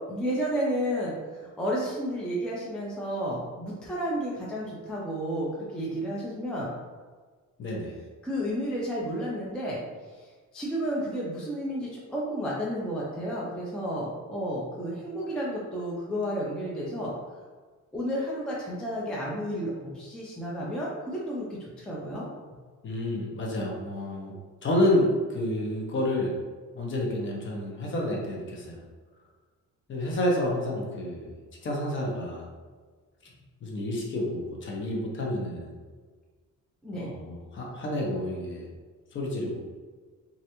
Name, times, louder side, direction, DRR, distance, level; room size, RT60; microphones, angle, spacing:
voice 1, 0.1-6.7 8.2-9.8 10.5-17.1 17.9-22.3 36.8-37.1, equal, 5° left, -5 dB, 0.3 m, -32 dB
voice 2, 7.6-8.0 22.8-24.3 24.6-26.3 26.7-28.8 29.9-31.3 31.6-32.5 33.6-35.7 37.0-38.7 39.1-39.6, left 1 dB, 40° left, -2 dB, 0.7 m, -29 dB
3.2 x 2.4 x 2.8 m, 1.5 s
cardioid pair, 160°, 31 cm